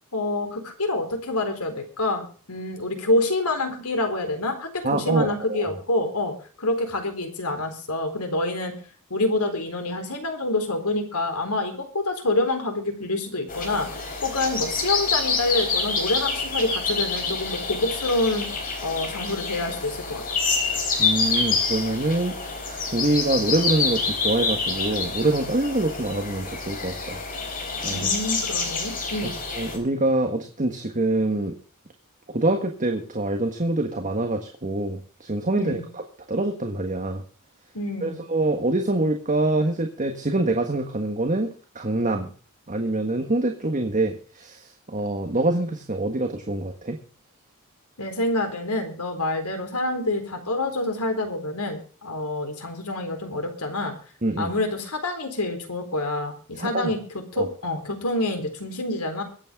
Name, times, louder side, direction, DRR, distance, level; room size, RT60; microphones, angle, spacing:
voice 1, 0.1-8.7 9.1-13.9 14.2-18.5 18.8-20.2 27.9-29.4 35.6-35.9 37.7-38.2 48.0-53.9 54.4-57.0 57.3-59.2, left 2 dB, 80° left, 6 dB, 4.0 m, -27 dB
voice 2, 4.8-5.7 20.6-22.4 22.6-28.1 29.5-31.5 32.3-36.0 36.3-37.2 38.0-42.3 42.7-47.0 54.2-54.5 56.5-56.9 57.4-57.5, right 2 dB, 35° right, 4 dB, 1.6 m, -25 dB
sound 1, 13.5-29.8, left 4 dB, 40° left, 4.2 m, -27 dB
23.5 x 8.7 x 3.7 m, 0.41 s
head